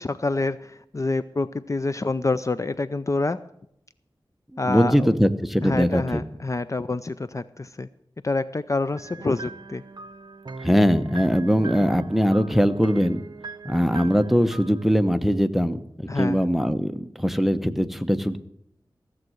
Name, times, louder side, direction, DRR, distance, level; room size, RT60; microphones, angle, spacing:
voice 1, 0.0-3.4 4.6-5.1 5.6-7.9 8.2-9.8 16.1-16.4, left 3 dB, 35° left, 13 dB, 0.5 m, -27 dB
voice 2, 4.6-6.2 10.6-13.2 13.6-18.4, equal, ahead, 9 dB, 0.9 m, -21 dB
sound 1, 9.0-15.2, right 3 dB, 55° right, 0.8 m, -41 dB
15.5 x 7.5 x 7.9 m, 0.75 s
wide cardioid pair, 75°, 9 cm